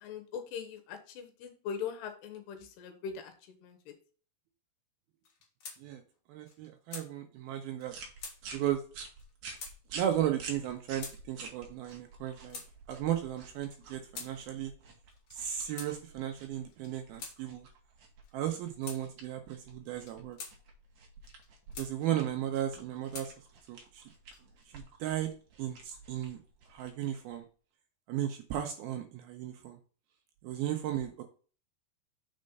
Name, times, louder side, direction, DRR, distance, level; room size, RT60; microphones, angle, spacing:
voice 1, 0.0-3.3 3.6-3.8, left 7 dB, 80° left, 5 dB, 3.1 m, -40 dB
sound 1, 5.2-5.8 6.1-6.2 6.5-7.1 7.8-7.9 8.2-8.4 9.2-9.3 9.6-9.8 10.5-10.6 11.0-11.2 11.9-12.7 13.5-14.3 15.1-15.4 15.8-15.9 16.7-17.4 18.2-18.4 18.8-19.0 19.9-20.5 21.2-21.9 22.6-23.3 24.1-24.6, left 4 dB, 55° left, 2.5 m, -45 dB
voice 2, 6.3-7.9 8.5-8.8 9.9-12.6 12.9-14.7 15.3-17.7 18.3-20.4 21.8-23.3 23.7-24.0 24.7-25.3 25.6-26.4 26.7-27.4 28.1-29.8 30.4-31.2, right 11 dB, 80° right, 5 dB, 2.3 m, -35 dB
sound 2, 7.9-27.4, right 4 dB, 65° right, 1.8 m, -50 dB
6.4 x 4.2 x 5.2 m, 0.39 s
omnidirectional pair, 4.9 m